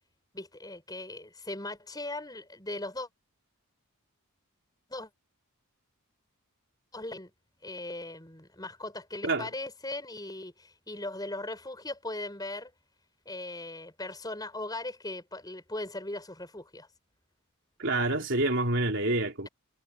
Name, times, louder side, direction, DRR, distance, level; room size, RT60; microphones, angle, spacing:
voice 1, 0.3-3.1 4.9-5.1 6.9-7.3 7.6-12.7 13.3-16.9, left 2 dB, 15° left, 7.3 m, -39 dB
voice 2, 17.8-19.5, right 2 dB, 55° right, 3.5 m, -27 dB
head